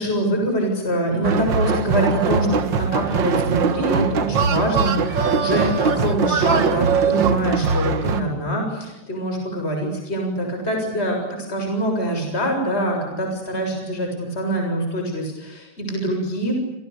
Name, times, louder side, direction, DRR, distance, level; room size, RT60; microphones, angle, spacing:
voice 1, 0.0-16.5, right 1 dB, 15° left, 3 dB, 7.4 m, -24 dB
sound 1, 1.2-8.2, right 5 dB, 50° right, 1.5 m, -21 dB
29.5 x 28.5 x 6.9 m, 0.98 s
omnidirectional pair, 3.7 m